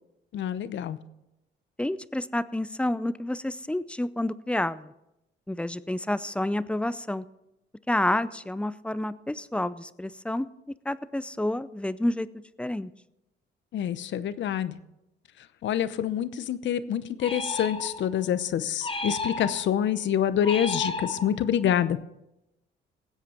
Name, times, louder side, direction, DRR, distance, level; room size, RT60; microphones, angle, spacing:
voice 1, 0.3-1.0 13.7-14.8 15.6-22.0, left 10 dB, 70° left, 14 dB, 0.8 m, -26 dB
voice 2, 1.8-4.9 5.5-7.2 7.9-10.5 10.9-12.3 12.6-12.9, left 1 dB, 5° left, 16 dB, 0.5 m, -29 dB
sound 1, 17.2-18.2 18.8-19.9 20.4-21.6, left 2 dB, 25° left, 1.1 m, -33 dB
18.5 x 8.3 x 4.4 m, 0.89 s
cardioid pair, 90°, 20 cm